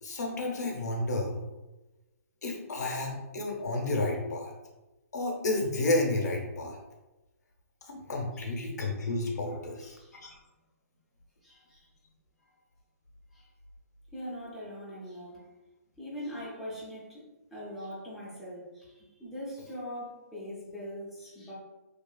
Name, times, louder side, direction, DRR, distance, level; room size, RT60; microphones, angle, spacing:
voice 1, 0.0-1.4 2.4-4.5 5.1-6.8 7.8-10.4, left 2 dB, 85° left, 0 dB, 0.7 m, -31 dB
voice 2, 9.8-10.2 11.4-11.9 13.3-13.5 14.1-15.5 16.0-21.5, equal, ahead, -8 dB, 0.4 m, -42 dB
2.8 x 2.3 x 2.2 m, 1.0 s
hypercardioid pair, 160°, 9 cm